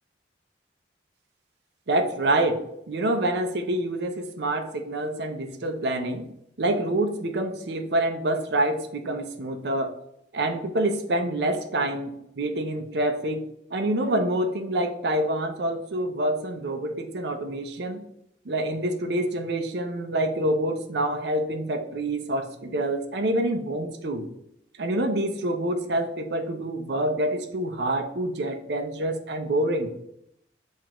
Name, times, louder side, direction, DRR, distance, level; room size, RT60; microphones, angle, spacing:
voice 1, 1.9-2.6 2.9-6.2 6.6-9.9 10.3-18.0 18.5-24.3 24.8-29.9, right 1 dB, 65° right, 6 dB, 0.5 m, -27 dB
6.4 x 2.4 x 2.9 m, 0.76 s
head